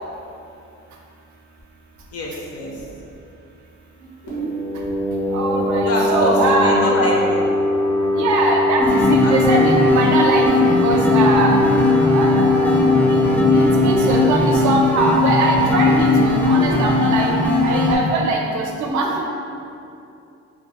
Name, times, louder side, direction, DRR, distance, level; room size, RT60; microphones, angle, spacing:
voice 1, 2.1-2.9 5.8-7.4 9.2-9.4, left 1 dB, 55° left, -2 dB, 0.6 m, -24 dB
sound 1, 4.3-15.7, left 1 dB, 80° left, 0.8 m, -21 dB
voice 2, 5.3-6.7 8.1-11.6 12.1-12.7 13.1-13.2 13.5-19.3, right 2 dB, 70° right, 0 dB, 0.5 m, -21 dB
sound 2, 8.8-17.9, left 3 dB, 5° left, 0.3 m, -18 dB
2.3 x 2.1 x 2.9 m, 2.6 s
cardioid pair, 90°, 30 cm